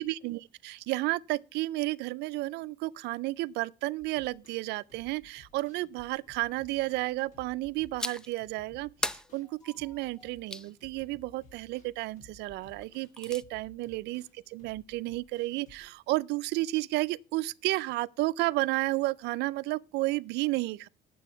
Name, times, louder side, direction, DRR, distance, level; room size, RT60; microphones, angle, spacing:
voice 1, 0.0-20.9, right 19 dB, 85° right, 0.4 m, -32 dB
sound 1, 4.0-17.2 17.5-17.6 17.9-18.0, left 2 dB, 50° left, 3.9 m, -59 dB
sound 2, 8.0-8.4 9.0-10.7 12.8-13.4, left 1 dB, 5° left, 0.5 m, -37 dB
9.0 x 7.6 x 5.6 m
cardioid pair, 110°, 17 cm